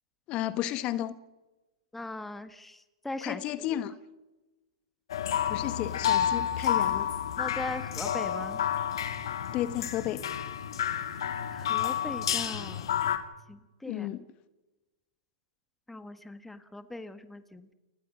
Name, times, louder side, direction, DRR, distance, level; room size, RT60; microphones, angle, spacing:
voice 1, 0.3-1.2 3.2-4.0 5.5-7.1 9.5-10.2 13.8-14.2, left 13 dB, 35° left, 1.4 m, -32 dB
voice 2, 1.9-3.4 7.4-8.6 11.5-12.9 13.5-14.1 15.9-17.7, left 2 dB, 5° left, 1.5 m, -40 dB
sound 1, 5.1-13.2, left 9 dB, 65° left, 2.6 m, -30 dB
29.5 x 20.0 x 6.2 m
hypercardioid pair, 110°, 3 cm